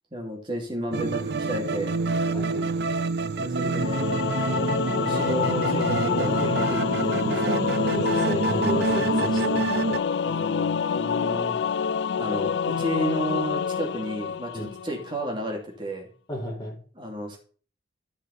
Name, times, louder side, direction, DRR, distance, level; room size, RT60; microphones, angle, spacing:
voice 1, 0.1-1.9 3.4-4.7 5.0-7.6 10.2-11.6 12.2-16.1 16.9-17.4, equal, 25° right, 0 dB, 2.9 m, -32 dB
sound 1, 0.9-10.0, right 3 dB, 60° right, 0.5 m, -27 dB
voice 2, 2.3-2.7 7.9-9.7 14.5-14.7 16.3-16.8, equal, 25° left, -4 dB, 4.4 m, -32 dB
Singing / Musical instrument, 3.8-15.1, left 6 dB, 65° left, 0.4 m, -27 dB
14.5 x 5.6 x 4.2 m, 0.41 s
head